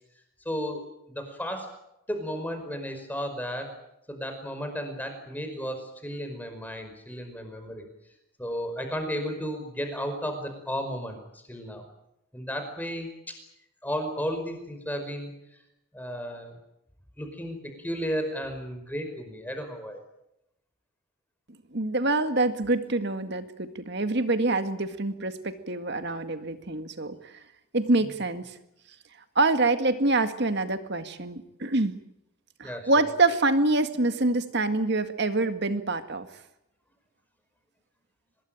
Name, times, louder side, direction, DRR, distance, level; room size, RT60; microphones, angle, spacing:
voice 1, 0.4-0.8 1.1-1.7 2.1-3.7 4.1-7.8 8.4-11.2 11.5-11.8 12.3-13.3 13.8-15.3 15.9-16.6 17.2-20.0 32.6-32.9, equal, 10° left, 6 dB, 5.1 m, -33 dB
voice 2, 21.7-27.3 27.7-28.5 29.4-32.0 32.6-36.3, right 2 dB, 50° right, 9 dB, 1.9 m, -26 dB
24.0 x 21.0 x 9.0 m, 0.85 s
head